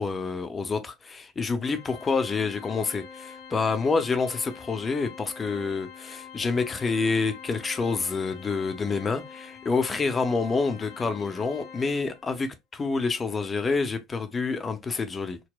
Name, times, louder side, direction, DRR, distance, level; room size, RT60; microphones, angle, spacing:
voice 1, 0.0-15.4, left 4 dB, 25° left, 0.6 m, -28 dB
Organ, 1.6-12.3, left 6 dB, 65° left, 0.8 m, -45 dB
3.9 x 2.1 x 2.3 m
hypercardioid pair, 65°, 0 cm